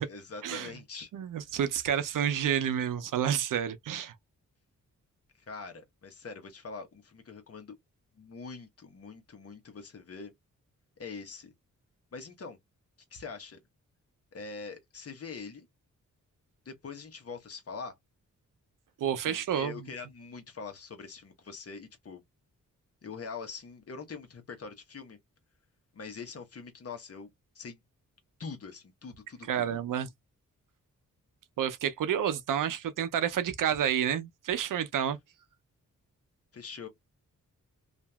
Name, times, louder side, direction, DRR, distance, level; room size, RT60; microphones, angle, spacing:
voice 1, 0.0-1.1 5.4-7.7 8.1-10.3 11.0-11.5 12.1-12.6 13.1-13.6 14.3-15.7 16.6-17.9 19.2-22.2 23.0-25.2 25.9-27.8 28.4-29.8 36.5-36.9, left 5 dB, 50° left, 1.0 m, -43 dB
voice 2, 1.1-4.1 19.0-19.8 29.5-30.1 31.6-35.2, right 9 dB, 85° right, 0.6 m, -29 dB
2.8 x 2.5 x 2.2 m
wide cardioid pair, 100°, 31 cm